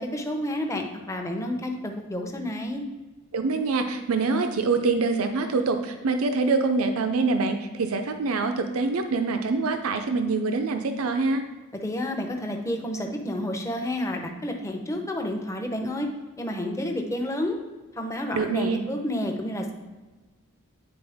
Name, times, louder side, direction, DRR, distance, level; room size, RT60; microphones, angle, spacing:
voice 1, 0.0-2.8 11.8-16.1 16.4-17.6 17.9-19.7, left 1 dB, 15° left, 3 dB, 0.7 m, -30 dB
voice 2, 3.3-11.4 18.3-18.8, right 3 dB, 70° right, 7 dB, 0.5 m, -25 dB
9.5 x 4.2 x 3.5 m, 1.2 s
head